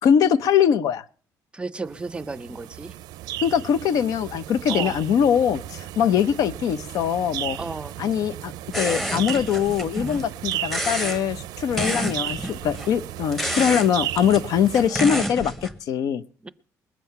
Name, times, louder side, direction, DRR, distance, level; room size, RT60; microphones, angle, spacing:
voice 1, 0.0-1.0 3.4-7.6 8.0-16.2, left 8 dB, 65° left, 15 dB, 0.7 m, -22 dB
voice 2, 1.5-2.9 4.7-5.0 7.5-8.0 16.4-16.5, right 3 dB, 15° right, 15 dB, 0.6 m, -33 dB
sound 1, 1.9-14.9, right 14 dB, 85° right, 0.5 m, -35 dB
sound 2, 8.7-10.2 10.5-11.2 11.7-12.9 13.3-13.9 14.2-15.8, right 1 dB, 5° left, 1.0 m, -29 dB
20.5 x 7.6 x 5.6 m, 0.42 s
cardioid pair, 145°, 7 cm